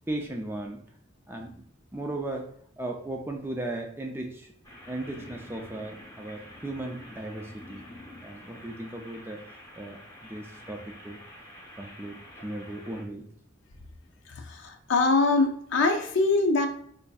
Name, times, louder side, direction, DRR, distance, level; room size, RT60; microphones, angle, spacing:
voice 1, 0.1-0.8 1.3-1.6 1.9-2.5 2.8-4.5 4.9-7.8 8.2-9.4 9.8-11.2 11.8-13.3, right 1 dB, 10° right, 2 dB, 0.3 m, -36 dB
sound 1, 4.6-13.0, left 1 dB, 15° left, 0.8 m, -48 dB
voice 2, 14.3-16.7, left 3 dB, 65° left, 6 dB, 0.5 m, -23 dB
4.3 x 2.6 x 2.3 m, 0.64 s
head